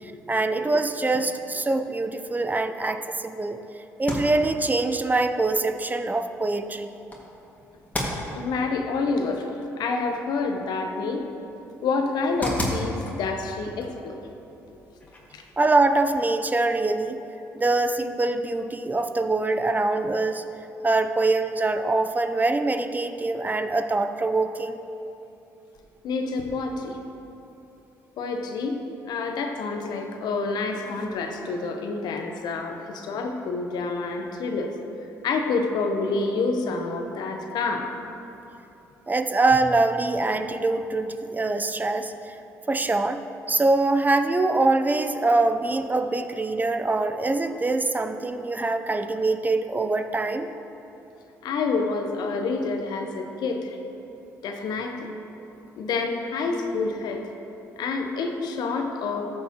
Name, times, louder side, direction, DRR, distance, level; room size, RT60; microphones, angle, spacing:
voice 1, 0.3-3.6 4.0-6.9 15.6-17.2 17.5-20.4 20.8-24.8 39.1-42.3 42.7-43.2 43.5-50.5, right 2 dB, 25° right, 8 dB, 0.5 m, -24 dB
sound 1, 3.9-15.6, left 1 dB, 20° left, 2.1 m, -37 dB
voice 2, 8.3-9.5 9.8-11.3 11.8-14.2 15.3-15.4 26.0-27.0 28.2-28.8 29.1-34.7 35.2-37.9 51.4-53.8 54.4-55.1 55.8-57.2 57.8-59.2, left 4 dB, 70° left, 4 dB, 0.9 m, -28 dB
13.5 x 6.7 x 3.0 m, 2.9 s
supercardioid pair, 60°, 7 cm